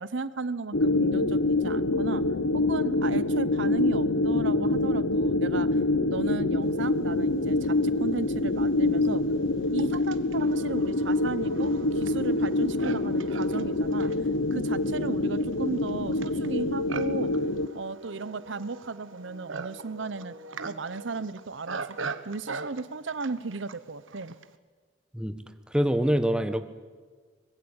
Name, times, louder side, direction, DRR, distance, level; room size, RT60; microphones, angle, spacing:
voice 1, 0.0-2.2 2.5-5.8 6.1-9.2 9.7-14.1 14.5-17.3 17.7-20.3 20.6-24.3, right 3 dB, 65° right, 16 dB, 0.8 m, -35 dB
sound 1, 0.7-17.7, left 2 dB, 70° left, 1.0 m, -26 dB
Livestock farm animals working animals, 7.8-7.9 8.6-24.6, right 4 dB, 90° right, 1.3 m, -42 dB
voice 2, 25.7-26.7, equal, 5° right, 9 dB, 1.2 m, -25 dB
24.5 x 21.5 x 8.8 m, 1.5 s
head